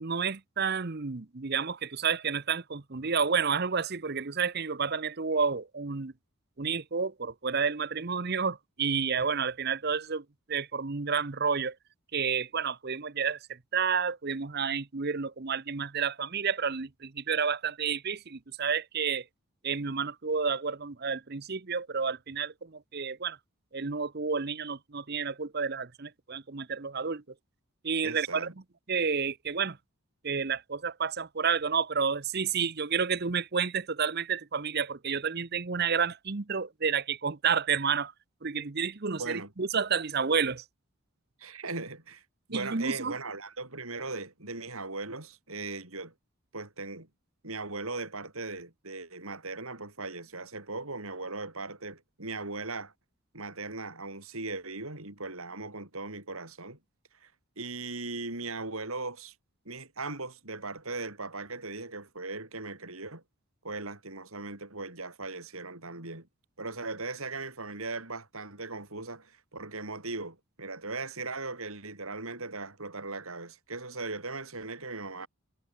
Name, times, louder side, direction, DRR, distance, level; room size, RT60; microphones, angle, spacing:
voice 1, 0.0-6.1 6.6-10.2 10.5-11.7 12.1-19.2 19.6-23.4 23.7-27.2 27.8-28.5 28.9-29.8 30.2-38.1 38.4-40.6 42.5-43.2, right 6 dB, 45° right, 0.8 m, -30 dB
voice 2, 28.0-28.5 39.2-39.5 41.4-42.2 42.5-46.1 46.5-47.1 47.4-52.9 53.3-56.8 57.2-57.3 57.6-59.3 59.7-63.2 63.6-66.3 66.6-75.3, right 3 dB, 70° right, 6.0 m, -38 dB
head